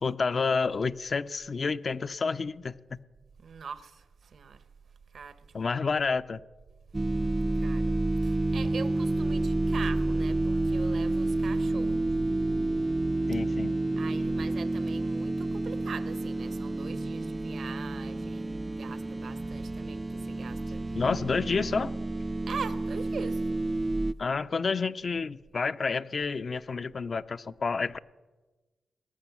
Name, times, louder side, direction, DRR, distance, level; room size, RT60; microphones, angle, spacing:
voice 1, 0.0-3.0 5.5-6.4 13.3-13.7 21.0-21.9 24.2-28.0, left 4 dB, 55° left, 0.5 m, -29 dB
voice 2, 3.4-4.7 5.1-5.7 7.5-8.0 8.2-12.1 14.0-21.0 22.5-23.5, right 6 dB, 70° right, 1.0 m, -42 dB
sound 1, 6.9-24.1, right 2 dB, 25° right, 0.4 m, -29 dB
19.5 x 8.1 x 7.2 m
cardioid pair, 50°, 0 cm